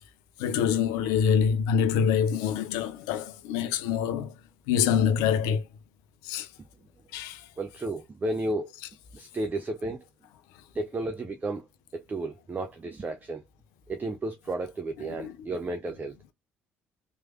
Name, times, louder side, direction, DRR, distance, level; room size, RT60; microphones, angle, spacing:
voice 1, 0.4-4.3 4.7-5.6 6.2-6.5 7.1-7.4 15.0-15.4, left 7 dB, 70° left, 0.5 m, -25 dB
voice 2, 7.6-8.7 9.1-10.0 10.7-11.6 11.9-13.4 13.9-16.2, right 2 dB, 25° right, 0.6 m, -33 dB
3.1 x 3.1 x 2.5 m
hypercardioid pair, 50°, 6 cm